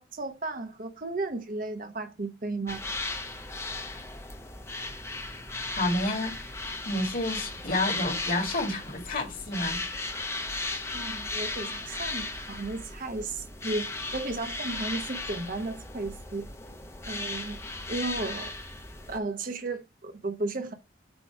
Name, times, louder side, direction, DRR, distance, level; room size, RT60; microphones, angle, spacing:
voice 1, 0.0-2.8 10.9-16.4 17.1-17.6 17.9-18.5 19.1-20.7, right 2 dB, 45° right, 0.8 m, -34 dB
sound 1, 2.7-19.2, left 2 dB, 15° left, 0.8 m, -36 dB
voice 2, 5.8-6.4 6.8-9.8, left 1 dB, 45° left, 2.1 m, -29 dB
7.9 x 3.0 x 4.6 m
head